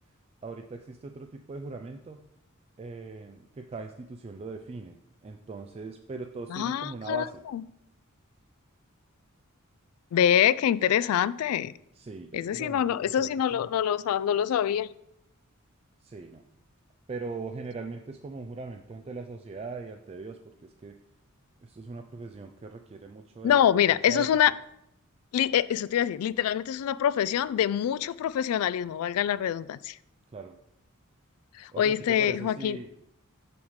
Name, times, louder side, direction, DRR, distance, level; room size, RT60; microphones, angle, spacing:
voice 1, 0.4-2.2 2.8-5.0 5.2-7.4 11.9-13.6 16.0-16.4 17.1-21.0 21.6-24.3 30.3-30.6 31.7-32.9, right 3 dB, 30° right, 5 dB, 0.4 m, -40 dB
voice 2, 6.5-7.3 7.5-7.6 10.1-11.7 12.3-14.9 23.4-24.5 25.3-30.0 31.6-32.8, left 9 dB, 85° left, 17 dB, 0.3 m, -25 dB
6.9 x 6.5 x 3.2 m, 0.79 s
head